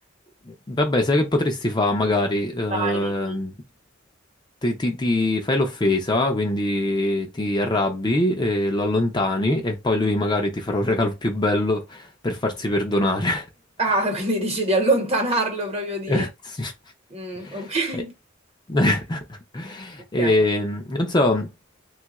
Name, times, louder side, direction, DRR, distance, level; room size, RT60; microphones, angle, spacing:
voice 1, 0.5-3.5 4.6-13.5 16.1-16.7 17.4-18.0 18.7-21.5, left 1 dB, 20° left, 0.5 m, -23 dB
voice 2, 2.7-3.1 13.8-16.2 17.1-18.1 20.2-20.4, right 2 dB, 30° right, 1.0 m, -24 dB
3.2 x 2.3 x 2.9 m
head